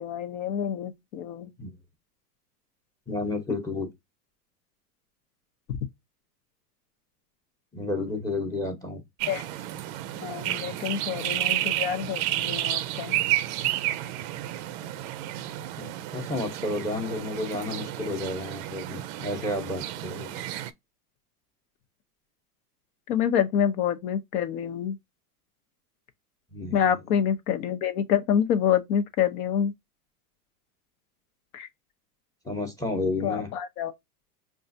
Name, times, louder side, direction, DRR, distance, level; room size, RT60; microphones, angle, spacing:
voice 1, 0.0-1.5 5.7-5.8 9.3-9.4 10.1-13.2 23.1-25.0 26.7-29.7 31.5-31.7 33.2-33.9, left 8 dB, 65° left, 0.9 m, -27 dB
voice 2, 3.1-3.9 7.7-9.0 15.8-20.4 26.5-26.8 32.4-33.5, left 2 dB, 5° left, 0.8 m, -31 dB
sound 1, 9.2-20.7, right 14 dB, 45° right, 0.4 m, -31 dB
5.3 x 2.4 x 2.6 m
supercardioid pair, 125°, 46 cm